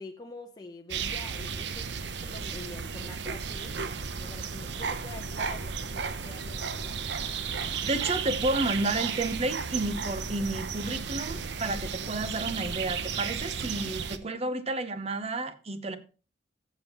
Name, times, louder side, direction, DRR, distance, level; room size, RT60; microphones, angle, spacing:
voice 1, 0.0-3.9 4.2-7.0, left 2 dB, 20° left, 0.8 m, -46 dB
sound 1, 0.9-14.2, right 6 dB, 70° right, 0.7 m, -34 dB
voice 2, 7.8-16.0, right 2 dB, 35° right, 0.8 m, -31 dB
14.5 x 7.1 x 3.0 m
head